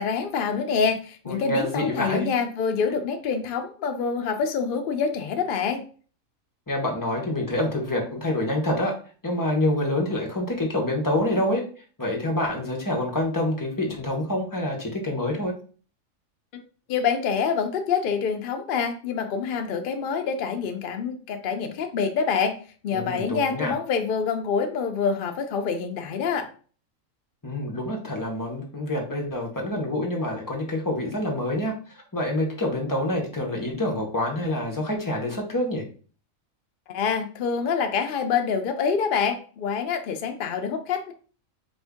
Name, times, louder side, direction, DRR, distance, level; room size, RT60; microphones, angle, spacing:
voice 1, 0.0-5.8 16.9-22.5 22.8-26.5 36.9-41.1, left 6 dB, 60° left, 5 dB, 0.5 m, -26 dB
voice 2, 1.2-2.3 6.7-8.9 9.2-11.6 12.0-15.5 22.9-23.7 27.4-35.8, left 1 dB, 15° left, -1 dB, 0.8 m, -27 dB
4.3 x 2.6 x 3.5 m, 0.40 s
omnidirectional pair, 1.4 m